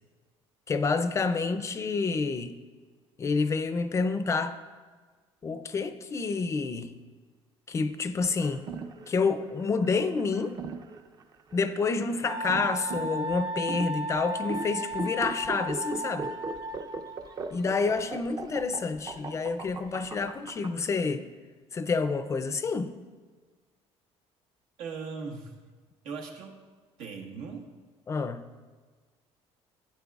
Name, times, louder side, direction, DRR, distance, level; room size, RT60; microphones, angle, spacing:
voice 1, 0.7-2.6 3.2-4.6 5.4-7.0 7.7-8.7 9.1-10.6 11.5-16.3 17.5-21.3 21.7-22.9 28.1-28.5, left 4 dB, 25° left, 0.4 m, -28 dB
sound 1, 8.2-20.7, right 4 dB, 35° right, 0.6 m, -39 dB
Wind instrument woodwind instrument, 12.3-17.2, equal, 55° right, 2.4 m, -35 dB
voice 2, 24.8-25.5 26.0-26.6 27.0-27.6, right 5 dB, 85° right, 1.4 m, -39 dB
12.5 x 9.3 x 2.4 m
cardioid pair, 135°, 11 cm